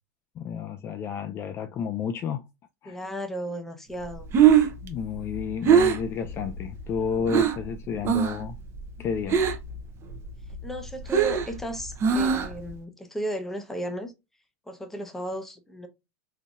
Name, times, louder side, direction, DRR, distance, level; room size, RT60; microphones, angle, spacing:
voice 1, 0.4-2.5 2.8-3.0 4.8-8.6 9.0-9.4, left 6 dB, 30° left, 0.4 m, -31 dB
voice 2, 2.9-4.3 10.6-14.1 14.7-15.9, right 1 dB, 5° left, 0.7 m, -34 dB
Breathing, 4.1-7.7 8.0-8.5 8.7-9.8 10.1-12.7, right 8 dB, 30° right, 0.7 m, -22 dB
3.8 x 2.7 x 2.4 m
supercardioid pair, 130°, 8 cm